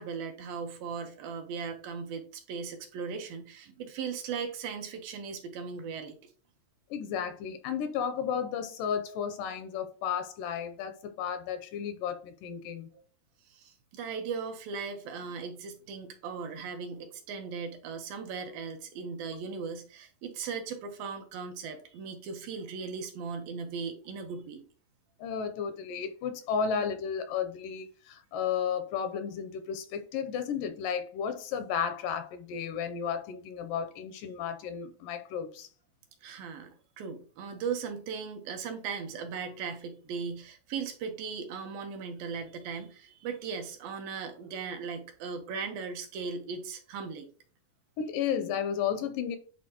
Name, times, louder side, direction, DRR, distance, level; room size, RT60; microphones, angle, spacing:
voice 1, 0.0-6.2 12.9-13.0 13.5-24.6 36.2-47.3, right 5 dB, 80° right, 2.7 m, -38 dB
voice 2, 6.9-12.9 25.2-35.7 48.0-49.4, left 7 dB, 80° left, 2.1 m, -33 dB
10.5 x 4.2 x 2.9 m
omnidirectional pair, 4.2 m